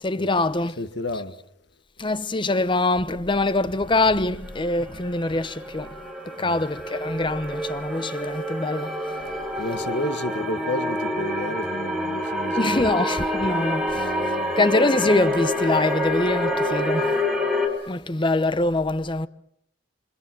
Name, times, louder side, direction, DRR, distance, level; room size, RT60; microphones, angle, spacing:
voice 1, 0.0-0.7 1.1-1.2 2.0-6.0 6.4-8.9 12.6-14.1 14.6-17.2 17.9-19.3, left 2 dB, 25° left, 0.9 m, -24 dB
voice 2, 0.8-1.4 6.4-6.6 9.6-12.9 13.9-14.5, left 1 dB, 65° left, 1.6 m, -31 dB
sound 1, 4.4-17.7, left 1 dB, ahead, 5.2 m, -27 dB
28.0 x 25.5 x 6.3 m
head